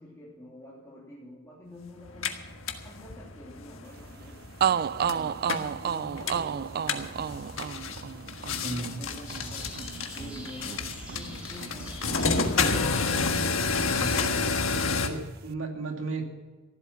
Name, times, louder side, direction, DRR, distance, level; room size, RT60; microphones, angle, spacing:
voice 1, 0.0-2.4 2.8-4.4 4.7-7.4 8.3-10.9 11.1-13.1, left 1 dB, 15° left, -7 dB, 3.2 m, -47 dB
sound 1, 2.0-15.1, left 4 dB, 75° left, 1.5 m, -31 dB
sound 2, 4.2-4.3 4.6-12.5 12.7-13.9, right 8 dB, 50° right, 0.4 m, -32 dB
voice 2, 8.6-9.0 13.9-14.4 15.0-16.2, right 3 dB, 70° right, 2 dB, 2.6 m, -34 dB
sound 3, 9.3-14.9, equal, 5° right, 3.6 m, -45 dB
15.0 x 12.0 x 5.8 m, 1.3 s
head